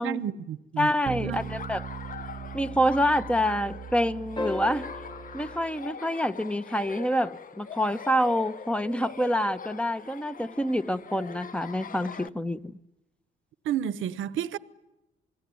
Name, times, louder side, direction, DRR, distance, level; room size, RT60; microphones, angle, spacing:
voice 1, 0.0-0.9 1.2-1.4 13.6-14.6, right 10 dB, 80° right, 1.1 m, -31 dB
voice 2, 0.8-1.8 2.5-4.9 5.3-12.7, equal, 5° left, 1.0 m, -27 dB
sound 1, 1.1-5.8, right 8 dB, 55° right, 0.9 m, -40 dB
Laughter, 1.4-12.3, left 6 dB, 45° left, 1.1 m, -43 dB
sound 2, 4.4-6.9 9.1-9.2, left 1 dB, 25° left, 1.6 m, -38 dB
28.0 x 20.0 x 9.5 m
cardioid pair, 90°, 20 cm